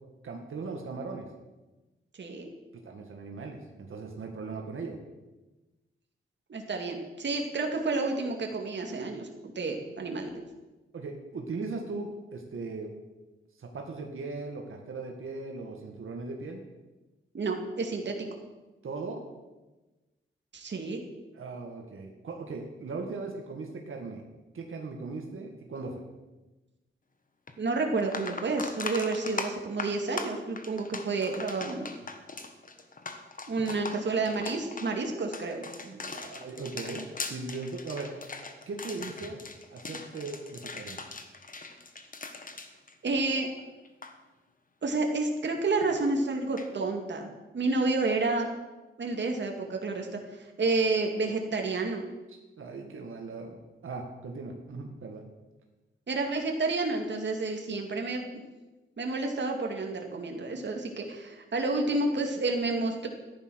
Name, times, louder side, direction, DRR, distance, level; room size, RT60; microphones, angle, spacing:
voice 1, 0.2-1.3 2.8-5.0 10.9-12.9 13.6-16.6 18.8-19.2 21.3-24.2 24.5-26.0 33.6-33.8 35.8-38.3 38.7-39.4 39.7-41.0 52.3-55.2, right 3 dB, 90° right, 2 dB, 1.9 m, -38 dB
voice 2, 2.2-2.5 6.5-9.3 9.6-10.3 17.3-18.2 20.5-21.0 27.6-31.9 33.5-35.6 43.0-43.5 44.8-48.5 49.0-50.2 50.6-52.0 56.1-58.2 59.0-63.1, right 3 dB, 60° right, 2 dB, 2.2 m, -30 dB
sound 1, 27.5-27.6 28.0-43.6 43.8-44.1 46.6-46.7, left 3 dB, 40° left, 1.4 m, -40 dB
14.5 x 10.5 x 6.3 m, 1.1 s
wide cardioid pair, 125°, 20 cm